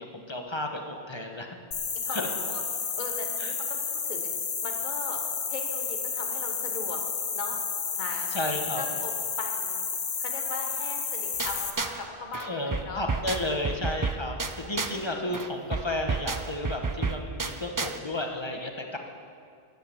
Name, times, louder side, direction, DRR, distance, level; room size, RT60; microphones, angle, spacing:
voice 1, 0.0-1.6 2.1-2.3 3.4-3.5 8.3-8.8 12.4-19.0, left 1 dB, 25° left, 3 dB, 1.2 m, -33 dB
sound 1, 1.7-11.7, left 6 dB, 85° left, 1.4 m, -31 dB
voice 2, 2.0-2.6 3.0-4.3 4.6-7.0 7.3-7.6 7.9-8.4 8.8-9.9 10.2-13.0 14.9-15.3, left 3 dB, 45° left, 2 dB, 1.4 m, -39 dB
sound 2, 11.4-12.1 12.3-15.1 15.3-18.0, right 4 dB, 30° right, 0.4 m, -32 dB
13.5 x 10.5 x 7.0 m, 2.3 s
omnidirectional pair, 1.1 m